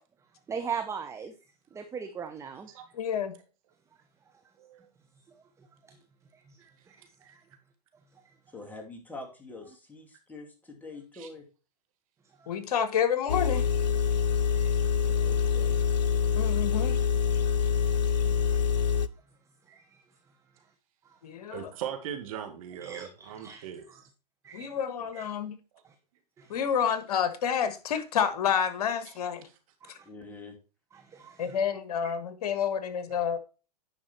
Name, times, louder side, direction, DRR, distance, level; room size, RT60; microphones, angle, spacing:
voice 1, 0.5-1.3 1.7-2.7 7.2-7.3 19.7-19.8 22.8-23.1 23.4-23.6 24.4-24.7 25.1-25.2 26.4-26.5 29.8-29.9 30.9-31.6 32.0-32.1, right 6 dB, 15° right, 0.8 m, -38 dB
voice 2, 2.9-3.3 12.5-13.7 16.3-17.0 21.2-21.7 24.5-25.6 26.5-29.5 31.4-33.4, left 8 dB, 65° left, 1.6 m, -29 dB
voice 3, 4.6-4.9 11.1-11.3 21.5-23.8 29.1-29.2 29.4-29.5, right 9 dB, 55° right, 2.3 m, -39 dB
voice 4, 8.5-11.5 15.0-15.8 25.0-25.1 30.0-30.6, left 2 dB, 10° left, 2.6 m, -45 dB
Engine, 13.3-19.1, left 7 dB, 85° left, 0.6 m, -25 dB
10.0 x 5.6 x 4.4 m
hypercardioid pair, 120°, 21 cm